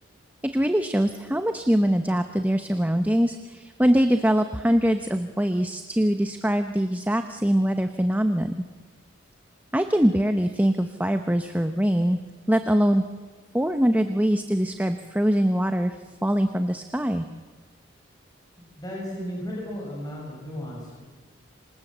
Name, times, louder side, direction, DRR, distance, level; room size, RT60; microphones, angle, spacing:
voice 1, 0.5-8.5 9.7-12.2 12.5-13.0 13.5-16.0 16.2-17.2, equal, 10° right, 7 dB, 0.9 m, -23 dB
voice 2, 18.6-21.0, equal, 20° left, -3 dB, 6.4 m, -35 dB
27.5 x 25.5 x 7.5 m, 1.4 s
head